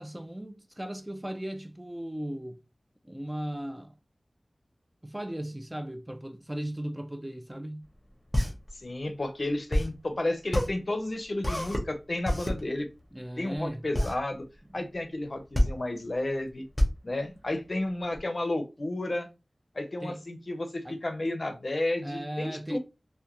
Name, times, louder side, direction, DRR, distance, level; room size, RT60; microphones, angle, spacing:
voice 1, 0.0-2.6 3.0-3.9 5.0-7.9 13.1-13.8 14.7-14.9 20.0-20.2 20.8-21.0 22.0-22.8, right 1 dB, 15° right, 0.3 m, -37 dB
sound 1, 7.8-18.2, equal, 5° left, 0.8 m, -29 dB
voice 2, 8.8-12.9 13.4-14.5 14.7-16.6 17.0-19.3 19.7-22.8, left 1 dB, 55° left, 0.5 m, -32 dB
2.3 x 2.1 x 2.8 m
wide cardioid pair, 70°, 0 cm